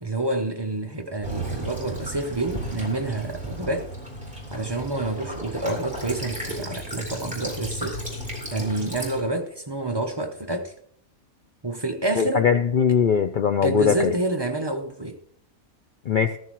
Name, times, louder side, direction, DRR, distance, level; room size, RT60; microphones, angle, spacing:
voice 1, 0.0-3.9 4.5-8.0 8.5-10.7 11.6-12.5 13.6-15.2, right 2 dB, 30° right, 0.5 m, -28 dB
Child speech kid speaking / Bird vocalization bird call bird song / Stream, 1.2-9.2, right 1 dB, 5° right, 3.8 m, -34 dB
voice 2, 12.2-14.1 16.1-16.4, left 7 dB, 85° left, 0.4 m, -21 dB
14.0 x 13.5 x 3.0 m
omnidirectional pair, 1.5 m